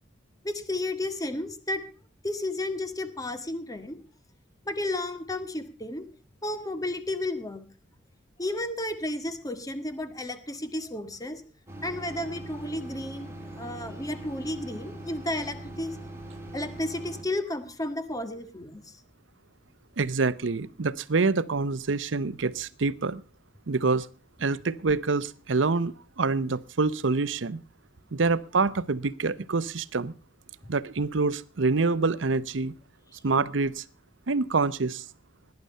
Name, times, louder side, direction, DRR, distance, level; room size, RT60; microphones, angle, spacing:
voice 1, 0.4-1.8 2.2-4.0 4.6-6.1 6.4-7.6 8.4-11.4 11.8-16.0 16.5-18.9, left 1 dB, 20° left, 9 dB, 1.6 m, -32 dB
sound 1, 11.7-17.2, right 1 dB, 15° right, 2.7 m, -41 dB
voice 2, 20.0-23.2 23.7-24.1 24.4-27.6 28.1-30.1 30.7-32.8 33.2-33.8 34.3-35.0, right 4 dB, 85° right, 17 dB, 0.7 m, -26 dB
18.0 x 10.5 x 5.5 m, 0.39 s
head